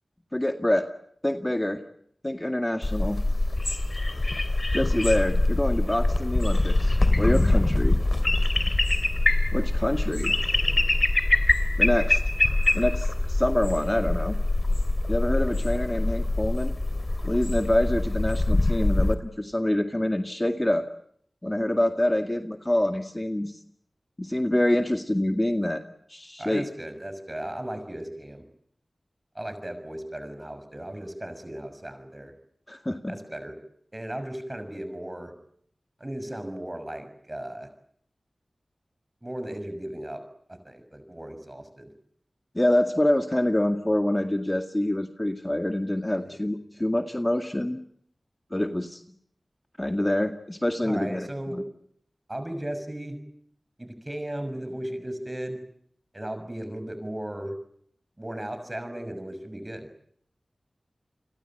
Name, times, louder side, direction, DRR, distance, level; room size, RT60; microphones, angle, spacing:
voice 1, 0.3-0.9 1.2-1.8 2.2-3.2 4.7-8.0 9.5-10.3 11.8-12.2 12.7-14.4 15.1-16.7 17.2-20.8 21.4-23.5 24.2-25.8 26.1-26.6 32.7-33.1 42.5-47.8 48.5-49.0 49.8-51.6, left 1 dB, 20° left, 6 dB, 2.0 m, -26 dB
sound 1, 2.8-19.1, left 2 dB, 45° left, 3.0 m, -24 dB
voice 2, 26.4-28.4 29.3-32.3 33.1-33.6 33.9-35.3 36.0-37.7 39.2-40.2 40.5-41.9 46.2-46.3 50.8-51.6 52.3-53.2 53.8-55.6 56.1-57.5 58.2-59.9, right 1 dB, 25° right, 9 dB, 6.2 m, -36 dB
29.5 x 21.0 x 9.0 m, 0.69 s
cardioid pair, 40°, 0 cm